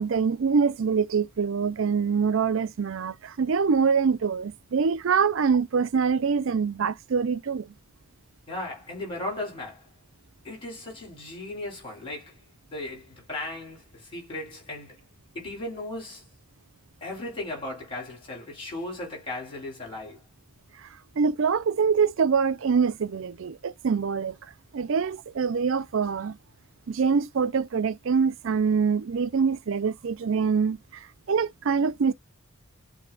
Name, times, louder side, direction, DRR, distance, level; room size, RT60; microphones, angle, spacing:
voice 1, 0.0-7.7 20.8-20.9 21.2-24.4 24.7-26.4 26.9-32.1, right 5 dB, 65° right, 0.4 m, -25 dB
voice 2, 8.5-9.9 10.4-15.0 15.3-16.3 17.0-20.2, left 2 dB, 25° left, 3.2 m, -36 dB
7.5 x 2.7 x 2.3 m
head